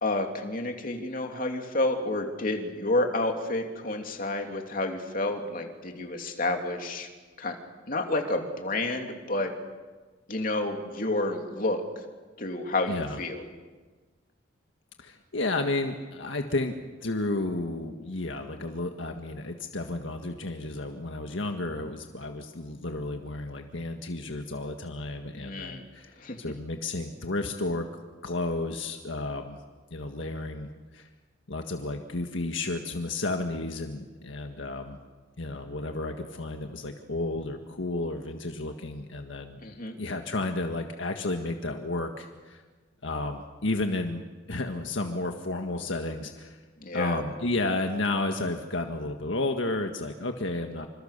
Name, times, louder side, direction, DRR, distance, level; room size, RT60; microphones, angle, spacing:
voice 1, 0.0-7.1 7.4-7.6 7.9-9.5 10.3-11.8 12.4-13.4 25.4-25.8 26.2-26.4 39.6-40.0 46.8-47.2, left 2 dB, 45° left, 3 dB, 3.0 m, -30 dB
voice 2, 12.9-13.2 15.0-16.7 17.0-27.9 28.2-29.6 29.9-31.1 31.5-35.0 35.4-39.6 40.0-42.6 43.0-44.2 44.5-46.6 46.9-50.9, left 2 dB, 75° left, 4 dB, 1.7 m, -32 dB
27.0 x 26.5 x 6.8 m, 1.3 s
head